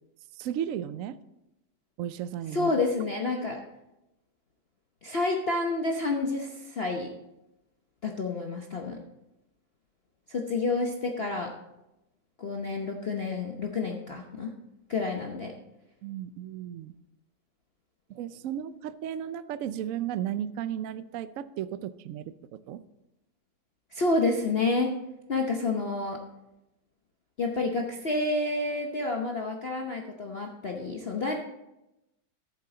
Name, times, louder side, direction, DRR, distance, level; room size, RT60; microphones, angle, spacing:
voice 1, 0.4-1.2 2.0-2.8 16.0-16.9 18.1-22.3 22.7-22.8, right 10 dB, 75° right, 13 dB, 0.7 m, -34 dB
voice 2, 2.5-3.6 5.0-7.1 8.0-9.0 10.3-11.5 12.4-14.5 14.9-15.5 23.9-24.9 25.3-26.2 27.4-31.3, left 3 dB, 45° left, 1 dB, 0.9 m, -29 dB
13.5 x 7.6 x 3.9 m, 0.92 s
omnidirectional pair, 2.0 m